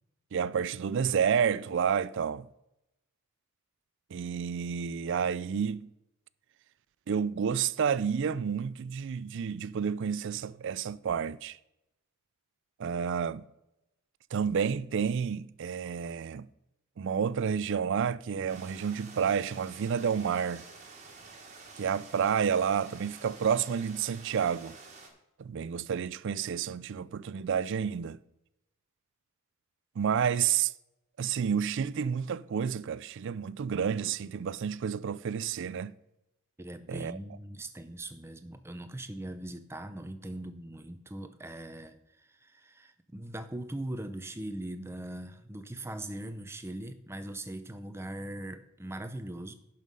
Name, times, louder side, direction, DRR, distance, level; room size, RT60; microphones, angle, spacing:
voice 1, 0.3-2.5 4.1-5.9 7.1-11.6 12.8-13.4 14.3-16.5 17.0-20.6 21.8-24.8 25.4-28.2 30.0-30.7 31.2-35.9 36.9-37.2, right 7 dB, 55° right, 0.3 m, -30 dB
sound 1, 18.5-25.1, right 4 dB, 30° right, 1.7 m, -50 dB
voice 2, 36.6-49.5, right 1 dB, 10° right, 0.6 m, -40 dB
11.0 x 5.7 x 5.4 m
head